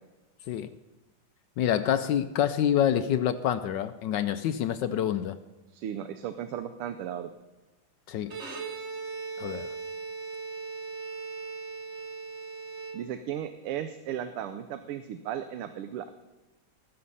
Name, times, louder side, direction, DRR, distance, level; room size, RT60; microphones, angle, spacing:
voice 1, 1.6-5.4 8.1-8.4 9.4-9.7, left 10 dB, 75° left, 10 dB, 1.0 m, -27 dB
voice 2, 5.7-7.3 12.9-16.2, right 10 dB, 90° right, 9 dB, 1.6 m, -35 dB
Bowed string instrument, 8.2-13.5, right 4 dB, 40° right, 1.2 m, -38 dB
19.5 x 6.8 x 5.5 m, 1.1 s
omnidirectional pair, 2.4 m